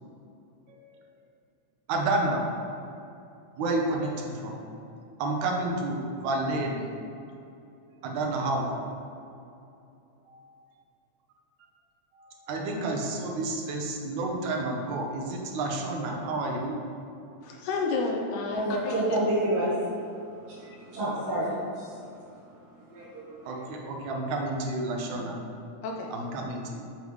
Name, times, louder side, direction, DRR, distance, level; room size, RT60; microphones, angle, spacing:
voice 1, 1.9-2.4 3.6-4.7 5.2-6.9 8.0-8.8 12.5-16.8 23.5-25.4 26.1-26.9, right 2 dB, 75° right, 0 dB, 2.2 m, -30 dB
voice 2, 17.4-19.2 25.8-26.1, left 3 dB, 85° left, 0 dB, 2.2 m, -31 dB
voice 3, 18.5-23.7, right 1 dB, 60° right, -11 dB, 2.5 m, -31 dB
7.3 x 5.4 x 3.1 m, 2.7 s
omnidirectional pair, 3.4 m